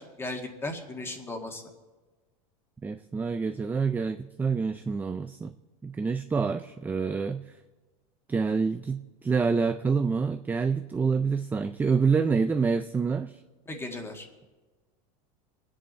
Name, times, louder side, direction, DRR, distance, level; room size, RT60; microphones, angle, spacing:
voice 1, 0.0-1.6 13.7-14.3, left 2 dB, 15° left, 3 dB, 1.9 m, -36 dB
voice 2, 2.8-5.5 5.8-7.5 8.3-13.4, right 5 dB, 10° right, 9 dB, 0.3 m, -27 dB
27.0 x 9.9 x 4.1 m, 1.2 s
supercardioid pair, 135°, 18 cm